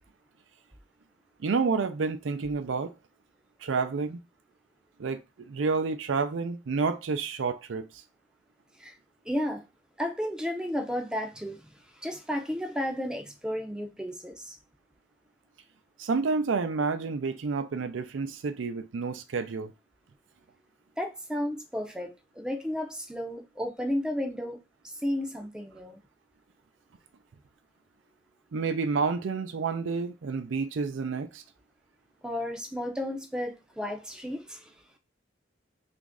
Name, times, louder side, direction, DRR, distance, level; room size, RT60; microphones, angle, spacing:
voice 1, 1.4-2.9 3.6-4.2 5.0-5.2 5.5-7.9 16.0-19.7 28.5-31.4, right 4 dB, 80° right, 0.4 m, -29 dB
voice 2, 9.3-9.6 10.0-11.7 12.0-14.6 21.0-22.1 22.4-24.6 25.0-26.0 32.2-34.7, equal, 5° right, 0.5 m, -33 dB
3.0 x 2.5 x 3.5 m
head